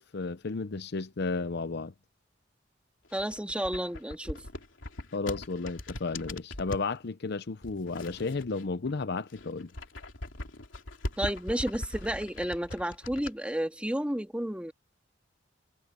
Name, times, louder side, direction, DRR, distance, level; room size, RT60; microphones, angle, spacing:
voice 1, 0.0-1.9 5.1-9.7, left 3 dB, 60° left, 0.7 m, -33 dB
sound 1, 3.0-6.9 7.6-8.9 9.2-13.3, left 1 dB, 85° left, 3.0 m, -40 dB
voice 2, 3.1-4.4 11.2-14.7, right 1 dB, 5° right, 2.0 m, -32 dB
head